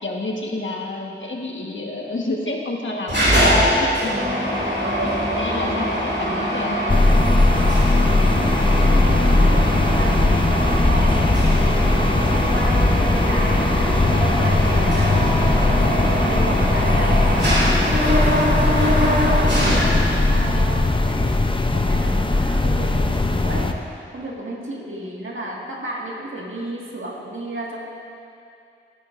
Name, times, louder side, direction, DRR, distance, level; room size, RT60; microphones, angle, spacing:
voice 1, 0.0-4.1 5.0-6.8 21.7-22.3, left 2 dB, 65° left, -1 dB, 1.3 m, -29 dB
Mechanisms, 3.1-20.5, equal, 55° right, 2.4 m, -23 dB
voice 2, 4.7-5.3 5.6-6.3 8.2-11.1 11.5-14.0 14.3-17.4 18.0-21.5 21.7-23.8 24.1-27.9, right 1 dB, 75° right, -3 dB, 1.8 m, -33 dB
sound 1, 6.9-23.7, left 2 dB, 25° left, 0.6 m, -19 dB
17.5 x 9.7 x 2.5 m, 2.5 s
wide cardioid pair, 65°, 21 cm